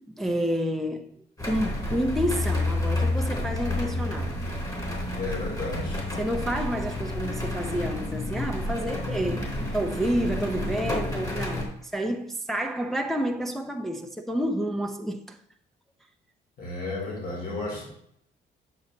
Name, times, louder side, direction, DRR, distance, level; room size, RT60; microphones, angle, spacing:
voice 1, 0.1-4.4 6.1-15.4, equal, ahead, 0.7 m, -29 dB
sound 1, 1.4-11.6, left 2 dB, 20° left, 3.5 m, -30 dB
voice 2, 5.2-6.0 16.6-17.8, left 2 dB, 50° left, 3.8 m, -33 dB
8.7 x 6.6 x 4.0 m
cardioid pair, 90°, 20 cm